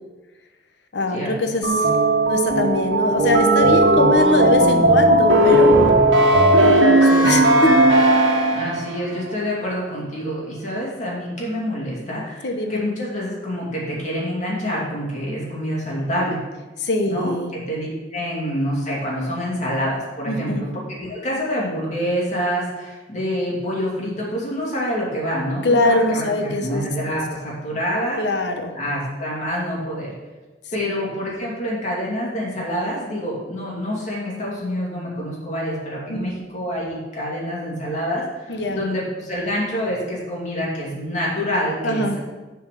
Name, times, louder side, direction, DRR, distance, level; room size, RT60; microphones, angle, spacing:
voice 1, 0.9-1.9 2.3-6.0 6.6-7.7 12.4-12.8 16.8-17.5 20.3-20.6 25.6-26.8 28.2-28.7 30.8-30.9 36.1-36.4 38.5-38.8 41.8-42.2, left 2 dB, 65° left, 5 dB, 1.0 m, -22 dB
sound 1, 1.6-8.9, right 1 dB, 85° right, 1.2 m, -16 dB
voice 2, 8.5-16.4 17.1-28.2 28.7-30.1 30.7-42.2, equal, 40° left, -5 dB, 2.6 m, -27 dB
7.2 x 4.8 x 6.6 m, 1.2 s
head